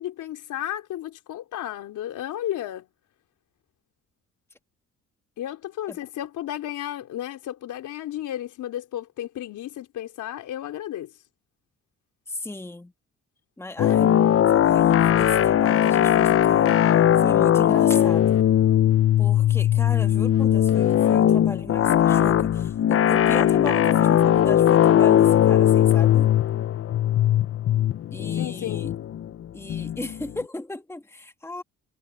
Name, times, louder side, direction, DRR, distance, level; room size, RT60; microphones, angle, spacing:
voice 1, 0.0-2.9 5.4-11.1 28.4-28.9, left 12 dB, 80° left, 3.9 m, -33 dB
voice 2, 12.3-12.9 13.6-14.2 14.5-16.8 17.2-18.4 19.2-26.3 28.1-28.9 29.5-31.6, left 2 dB, 10° left, 1.8 m, -35 dB
sound 1, 13.8-30.3, left 11 dB, 50° left, 0.6 m, -19 dB
cardioid pair, 90°, 30 cm